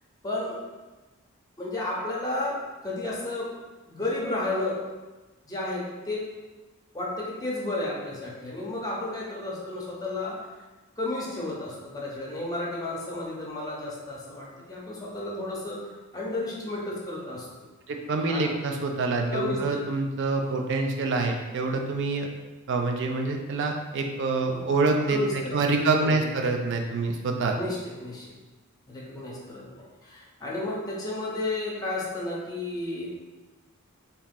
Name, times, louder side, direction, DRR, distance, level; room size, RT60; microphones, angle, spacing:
voice 1, 0.2-0.6 1.6-3.5 3.9-4.8 5.4-6.3 6.9-10.4 11.0-15.8 16.1-17.5 18.3-18.5 19.3-20.1 20.4-20.6 24.4-24.7 25.1-26.3 27.5-28.3 28.9-33.2, left 2 dB, 15° left, -5 dB, 0.8 m, -32 dB
voice 2, 17.9-22.3 22.7-27.5, right 3 dB, 55° right, 2 dB, 0.4 m, -26 dB
2.9 x 2.8 x 3.6 m, 1.2 s
head